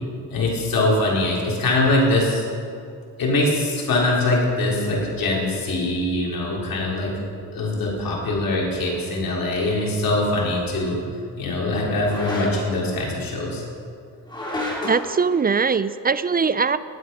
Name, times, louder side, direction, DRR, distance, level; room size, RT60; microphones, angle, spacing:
voice 1, 0.3-2.4 3.2-7.1 7.5-11.0 11.4-13.6, left 2 dB, 70° left, -3 dB, 3.6 m, -22 dB
sound 1, 8.9-9.0 12.0-12.8 14.3-15.1, left 1 dB, 10° left, 3.6 m, -30 dB
voice 2, 14.8-16.8, right 5 dB, 25° right, 15 dB, 0.4 m, -21 dB
18.0 x 8.5 x 5.5 m, 2.4 s
cardioid pair, 80°, 36 cm